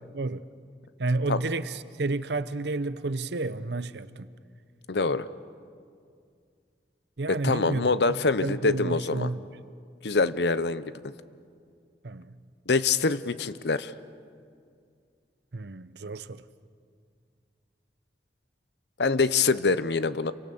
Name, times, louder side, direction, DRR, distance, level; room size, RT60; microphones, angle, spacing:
voice 1, 1.0-4.3 7.2-9.5 12.0-12.4 15.5-16.4, right 2 dB, 70° right, 0.8 m, -31 dB
voice 2, 4.9-5.3 7.3-9.3 10.0-10.9 12.7-13.9 19.0-20.3, left 4 dB, 70° left, 0.8 m, -25 dB
29.0 x 24.0 x 7.0 m
head